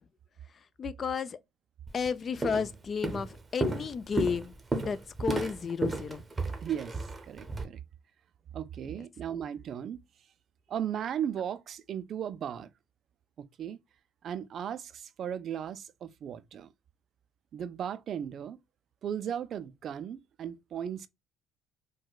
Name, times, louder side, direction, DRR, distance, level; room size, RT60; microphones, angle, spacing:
voice 1, 0.8-1.4 1.9-4.5 4.8-6.2, left 6 dB, 35° left, 0.3 m, -32 dB
Walk footsteps, 1.9-2.1 2.4-2.7 3.0-7.6, right 2 dB, 20° right, 0.7 m, -33 dB
voice 2, 6.6-7.0 7.3-7.8 8.5-10.0 10.7-12.7 13.4-13.8 14.2-16.7 17.5-18.6 19.0-21.1, right 9 dB, 50° right, 0.3 m, -36 dB
4.6 x 2.2 x 2.2 m
cardioid pair, 110°, 0 cm